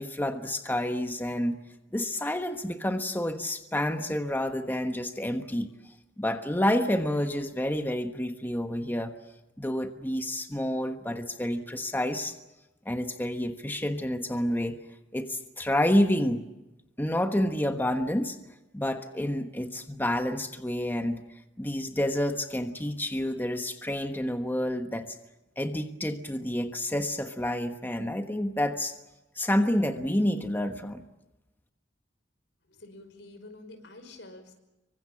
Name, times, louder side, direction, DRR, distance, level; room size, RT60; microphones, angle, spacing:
voice 1, 0.0-1.5 1.9-5.7 6.2-9.1 9.6-12.4 12.8-14.8 15.1-16.4 17.0-18.4 18.7-21.2 21.6-25.2 25.6-28.9 29.3-31.0, left 1 dB, 10° left, 6 dB, 1.2 m, -29 dB
voice 2, 32.7-34.6, left 2 dB, 80° left, 8 dB, 5.3 m, -48 dB
27.0 x 24.0 x 7.4 m, 0.97 s
head